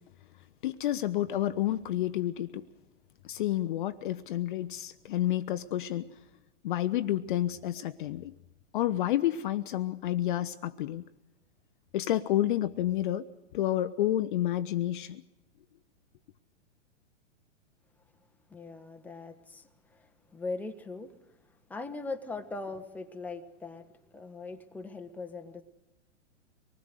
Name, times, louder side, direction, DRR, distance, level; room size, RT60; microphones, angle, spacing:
voice 1, 0.6-2.6 3.2-6.2 6.6-8.3 8.7-11.0 11.9-13.3 13.5-15.2, left 13 dB, 45° left, 12 dB, 0.7 m, -30 dB
voice 2, 18.5-21.4 21.7-25.6, left 3 dB, 5° left, 6 dB, 1.1 m, -40 dB
25.0 x 19.5 x 6.5 m, 1.0 s
figure-of-eight pair, 115°, 36 cm